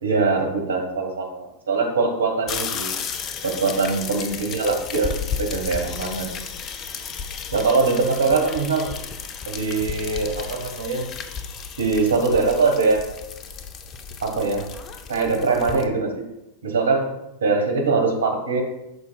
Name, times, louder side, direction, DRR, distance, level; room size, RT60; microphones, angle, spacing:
voice 1, 0.0-2.9 3.4-6.4 7.5-8.9 9.5-11.0 11.8-13.1 14.2-14.7 15.1-16.2 16.6-18.6, right 4 dB, 70° right, 3 dB, 1.6 m, -22 dB
sound 1, 2.5-15.8, left 6 dB, 30° left, 0.7 m, -33 dB
11.0 x 5.8 x 2.4 m, 0.90 s
figure-of-eight pair, 90°, 0 cm